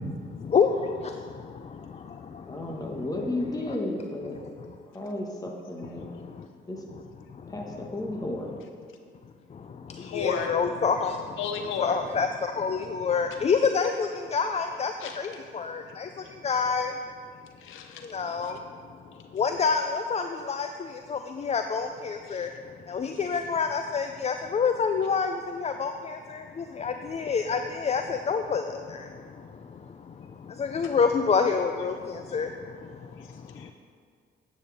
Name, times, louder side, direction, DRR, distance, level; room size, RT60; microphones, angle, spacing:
voice 1, 0.5-0.9 10.1-11.2 11.8-16.1 16.4-16.9 18.1-18.6 19.3-20.7 21.1-22.5 22.9-28.6 28.9-29.0 30.6-32.5, left 5 dB, 35° left, 7 dB, 0.4 m, -27 dB
voice 2, 2.5-4.4 4.9-6.1 6.6-6.8 7.5-8.5, left 1 dB, 20° left, 0 dB, 1.5 m, -33 dB
voice 3, 10.0-10.5 11.4-12.0 15.0-15.2 17.6-18.1 18.4-18.5 22.3-22.5 33.1-33.7, left 6 dB, 90° left, 5 dB, 0.8 m, -34 dB
9.8 x 8.5 x 3.5 m, 2.1 s
cardioid pair, 90°, 20 cm